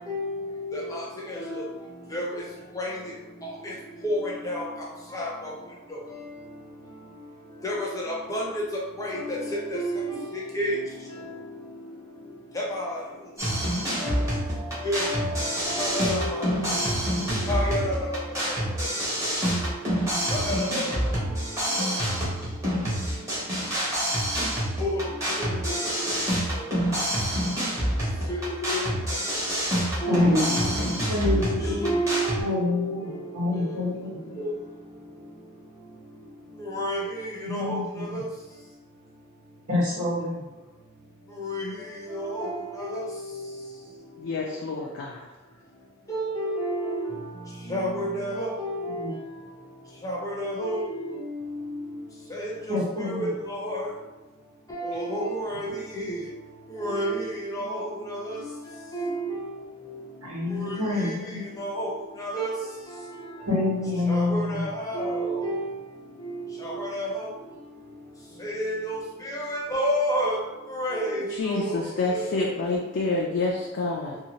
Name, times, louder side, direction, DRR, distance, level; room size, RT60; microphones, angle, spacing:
voice 1, 0.1-1.0 2.1-2.2 2.8-2.9 4.0-4.6 5.1-5.3 7.6-8.4 9.0-10.1 10.3-10.8 12.7-12.9 14.0-14.4 14.8-16.5 17.5-18.1 20.3-20.8 24.8-24.9 28.3-28.9 30.0-30.8 31.3-31.4 31.8-32.9 34.4-34.5 36.7-37.8 38.1-38.3 41.4-41.7 42.1-42.5 42.9-43.1 46.1-46.9 47.7-49.0 50.0-50.8 51.1-51.8 52.4-52.8 53.2-53.9 54.7-55.7 56.1-56.2 56.8-58.5 58.9-59.3 61.0-61.1 61.6-61.9 62.2-62.5 64.1-65.7 66.8-67.1 68.4-69.0 69.2-70.4 70.7-71.1 71.5-71.8 72.1-72.3, equal, 15° left, -4 dB, 0.6 m, -29 dB
sound 1, 13.4-32.4, equal, 15° right, 0.9 m, -27 dB
voice 2, 30.1-30.6 31.1-31.9 32.4-34.2 37.4-38.2 39.7-40.5 48.8-49.1 52.7-53.3 60.2-61.5 63.5-64.7, left 2 dB, 85° right, -8 dB, 1.4 m, -27 dB
voice 3, 44.2-45.3 70.9-74.2, left 3 dB, 55° left, -3 dB, 0.4 m, -28 dB
2.7 x 2.3 x 2.9 m, 1.1 s
head